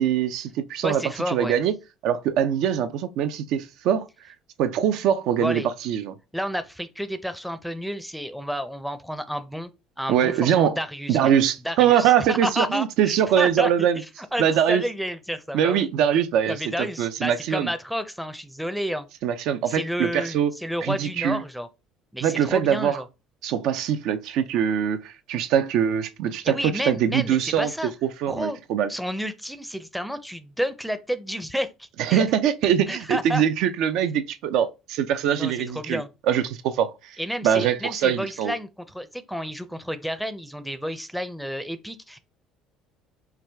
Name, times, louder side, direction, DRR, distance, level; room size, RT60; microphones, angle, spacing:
voice 1, 0.0-1.7 2.0-4.1 4.6-6.1 10.1-10.8 11.1-14.0 14.4-14.8 15.5-17.7 19.2-20.5 20.8-21.4 22.2-23.0 23.4-27.7 28.0-28.9 32.0-36.0 36.3-37.2 37.4-38.5, right 9 dB, 70° right, 0.4 m, -23 dB
voice 2, 0.8-1.6 5.4-5.7 6.3-9.7 10.0-11.3 11.6-14.0 14.3-15.9 16.5-19.1 19.7-21.7 22.1-23.1 26.4-27.9 28.3-28.6 28.9-32.2 32.9-33.4 35.3-36.1 37.2-42.2, equal, ahead, 0.5 m, -30 dB
4.5 x 2.3 x 3.3 m
supercardioid pair, 100°, 0 cm